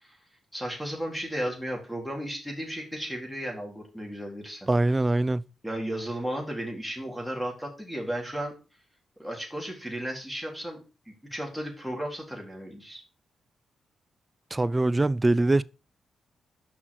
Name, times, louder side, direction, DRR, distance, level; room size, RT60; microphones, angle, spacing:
voice 1, 0.5-4.7 5.6-8.5 9.2-10.8 11.1-13.0, equal, ahead, 3.9 m, -34 dB
voice 2, 4.7-5.5 14.5-15.6, right 2 dB, 20° right, 0.5 m, -23 dB
6.3 x 5.8 x 6.5 m
cardioid pair, 70°, 0 cm